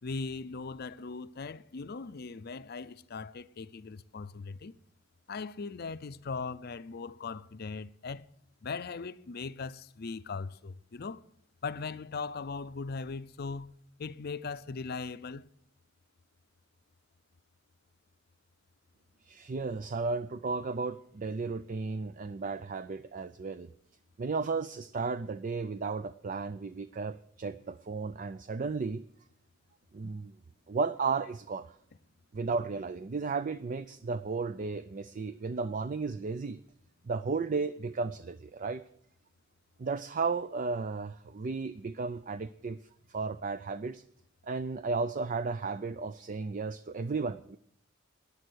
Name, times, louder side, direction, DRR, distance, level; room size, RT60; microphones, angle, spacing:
voice 1, 0.0-4.7 5.3-8.3 8.6-11.2 11.6-13.7 14.0-15.5, left 4 dB, 50° left, 0.5 m, -39 dB
voice 2, 19.2-23.7 24.2-29.0 29.9-30.3 30.7-31.8 32.3-36.6 37.0-38.8 39.8-42.8 43.1-44.0 44.4-47.6, right 4 dB, 40° right, 0.4 m, -34 dB
14.5 x 10.5 x 6.3 m
head